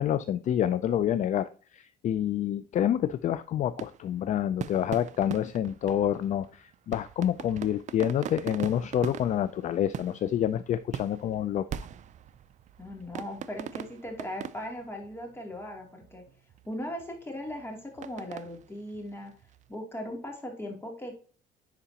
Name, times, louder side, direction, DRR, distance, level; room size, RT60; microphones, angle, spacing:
voice 1, 0.0-11.7, left 10 dB, 45° left, 14 dB, 0.4 m, -28 dB
sound 1, 3.0-19.7, right 9 dB, 45° right, 0.4 m, -42 dB
voice 2, 12.8-16.2 16.7-19.3 19.7-21.1, left 1 dB, 15° left, 1 dB, 2.9 m, -38 dB
10.0 x 4.9 x 2.9 m, 0.39 s
cardioid pair, 110°, 17 cm